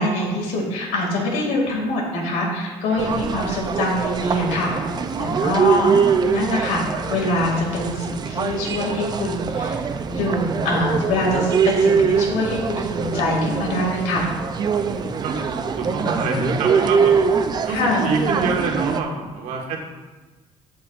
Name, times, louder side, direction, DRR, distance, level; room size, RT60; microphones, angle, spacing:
voice 1, 0.0-6.0 6.3-6.8 7.1-9.8 10.1-14.2 17.7-18.1, left 1 dB, 85° left, -2 dB, 2.4 m, -24 dB
voice 2, 2.9-3.2 14.6-17.2 17.7-19.8, right 3 dB, 80° right, 0 dB, 1.7 m, -27 dB
sound 1, 3.0-19.0, right 6 dB, 35° right, 0.5 m, -23 dB
16.0 x 5.7 x 2.5 m, 1.2 s
cardioid pair, 130°, 12 cm